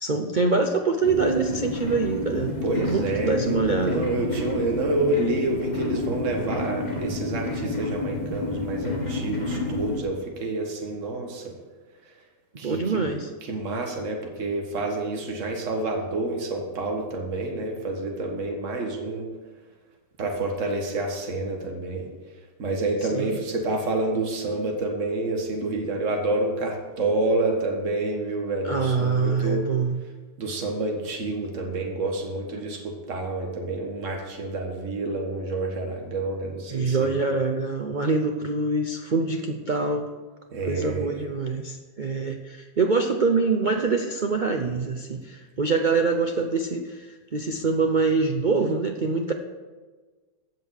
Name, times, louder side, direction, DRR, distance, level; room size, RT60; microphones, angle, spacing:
voice 1, 0.0-4.1 12.6-13.3 23.1-23.4 28.6-30.0 32.5-32.6 36.7-40.1 40.7-47.1 47.3-49.3, right 4 dB, 70° right, 4 dB, 0.4 m, -25 dB
sound 1, 1.0-10.0, left 2 dB, 25° left, 1.6 m, -30 dB
voice 2, 2.6-3.6 3.8-11.5 12.6-13.1 13.4-19.3 20.2-22.1 22.6-29.7 30.4-37.1 40.5-41.2, right 2 dB, 45° right, 1 dB, 1.9 m, -28 dB
15.5 x 5.5 x 6.5 m, 1.3 s
omnidirectional pair, 1.9 m